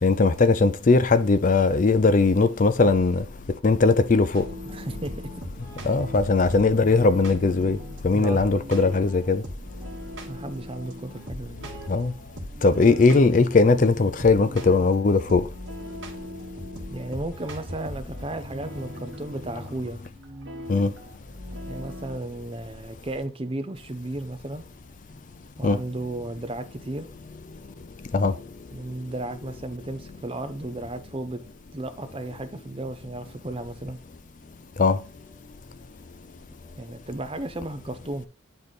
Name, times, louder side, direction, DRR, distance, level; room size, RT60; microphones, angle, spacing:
voice 1, 0.0-3.2 3.6-4.4 5.8-7.8 8.0-9.4 11.9-12.1 12.6-15.5 20.7-20.9 25.6-25.8 28.1-28.3 34.8-35.0, left 3 dB, 40° left, 0.4 m, -19 dB
sound 1, 4.3-22.2, equal, 70° right, 1.4 m, -39 dB
voice 2, 4.7-5.2 8.1-8.4 10.3-11.6 16.9-20.0 21.7-24.6 25.6-27.1 28.7-31.4 31.7-34.0 36.8-38.3, right 2 dB, 25° right, 0.6 m, -34 dB
8.9 x 3.3 x 4.0 m
head